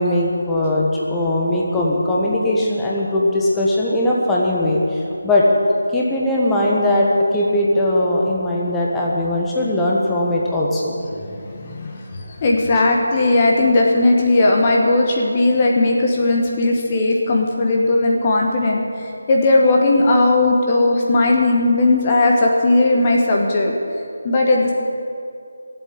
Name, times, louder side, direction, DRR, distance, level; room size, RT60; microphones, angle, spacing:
voice 1, 0.0-5.4 5.9-11.0, left 1 dB, 5° left, -5 dB, 1.3 m, -19 dB
voice 2, 11.2-11.9 12.4-18.8 19.3-23.7 24.2-24.7, left 2 dB, 25° left, 0 dB, 1.2 m, -17 dB
15.5 x 7.9 x 8.8 m, 2.5 s
figure-of-eight pair, 160°, 0 cm